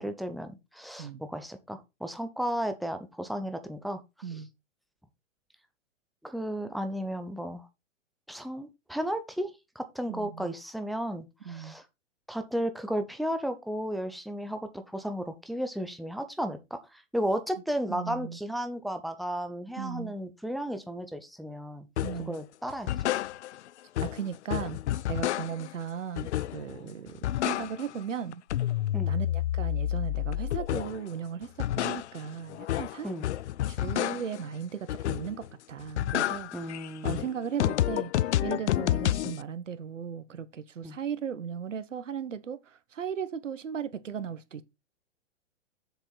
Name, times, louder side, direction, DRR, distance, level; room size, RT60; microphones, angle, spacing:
voice 1, 0.0-4.0 4.3-4.4 6.2-7.7 8.3-9.5 9.8-11.8 12.3-21.9 22.3-23.1 28.9-29.1 33.0-33.3 36.5-37.3 40.8-41.0, equal, ahead, 0.4 m, -34 dB
voice 2, 10.1-10.5 11.4-11.7 17.9-18.4 19.8-20.1 22.0-22.4 24.0-24.8 25.1-28.4 29.1-33.1 33.7-44.6, right 7 dB, 80° right, 1.2 m, -37 dB
sound 1, 22.0-22.3 22.7-23.7 24.0-25.8 26.2-26.8 27.1-28.0 28.3-31.1 31.4-34.5 34.9-35.5 35.8-39.4, left 13 dB, 65° left, 0.5 m, -30 dB
7.3 x 6.8 x 4.0 m
hypercardioid pair, 120°, 37 cm